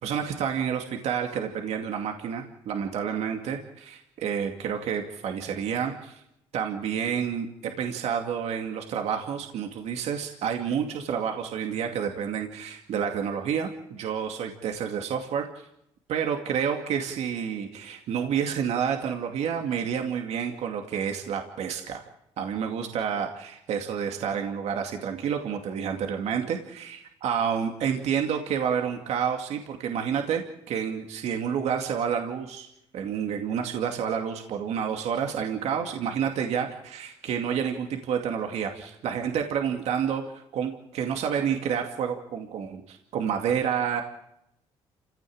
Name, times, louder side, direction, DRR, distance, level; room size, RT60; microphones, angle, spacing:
voice 1, 0.0-6.2 6.5-15.7 16.1-22.0 22.4-27.0 27.2-32.7 32.9-44.0, right 7 dB, 70° right, 3 dB, 2.4 m, -29 dB
28.0 x 16.5 x 8.8 m, 0.81 s
supercardioid pair, 75°, 12 cm